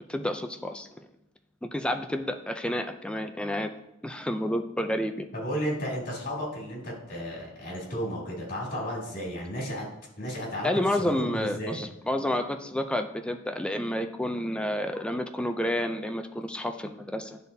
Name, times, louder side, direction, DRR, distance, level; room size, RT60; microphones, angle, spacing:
voice 1, 0.1-1.1 1.7-3.7 4.0-5.3 10.6-17.4, left 1 dB, 5° left, 6 dB, 0.4 m, -30 dB
voice 2, 5.3-9.9 10.2-10.7 11.0-11.8, equal, 40° left, -4 dB, 2.6 m, -33 dB
11.0 x 4.0 x 2.7 m, 0.85 s
head